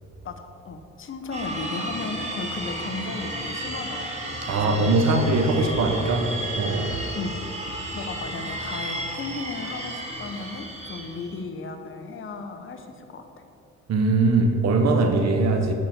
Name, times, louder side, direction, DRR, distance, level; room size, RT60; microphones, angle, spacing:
voice 1, 0.2-5.8 7.1-7.3 7.9-13.2, left 4 dB, 45° left, 1.0 m, -35 dB
sound 1, 1.3-11.4, right 1 dB, 20° right, 2.2 m, -33 dB
voice 2, 4.4-7.0 13.9-15.7, right 3 dB, 60° right, 1.0 m, -21 dB
10.5 x 4.3 x 7.3 m
cardioid pair, 90°, 30 cm